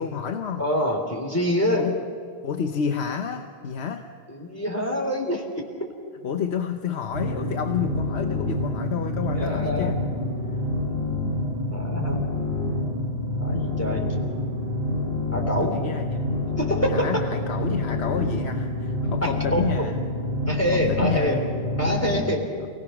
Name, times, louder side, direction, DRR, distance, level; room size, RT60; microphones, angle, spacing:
voice 1, 0.0-0.6 1.7-2.0 2.4-4.1 6.2-10.0 15.6-16.2 16.9-20.0 20.7-21.4, left 7 dB, 90° left, 5 dB, 1.2 m, -29 dB
voice 2, 0.6-1.8 4.3-5.4 9.2-9.9 11.7-12.2 13.4-14.1 15.3-15.8 16.6-17.0 19.2-19.6 20.5-21.4 21.8-22.4, equal, 15° left, 0 dB, 3.3 m, -25 dB
sound 1, 7.1-22.2, left 2 dB, 70° left, 7.3 m, -27 dB
28.5 x 18.5 x 6.0 m, 2.1 s
omnidirectional pair, 1.1 m